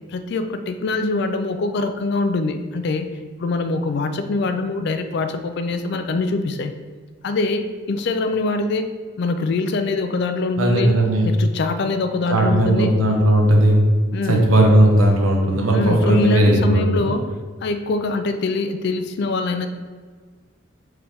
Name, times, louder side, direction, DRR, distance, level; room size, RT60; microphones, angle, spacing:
voice 1, 0.1-3.1 3.4-6.7 7.2-10.9 11.2-12.9 14.1-14.5 15.7-17.3 17.6-19.7, left 3 dB, 55° left, 8 dB, 0.4 m, -23 dB
voice 2, 10.6-11.3 12.3-13.8 14.3-17.1, right 1 dB, 85° right, 0 dB, 0.9 m, -16 dB
4.7 x 3.2 x 3.5 m, 1.5 s
head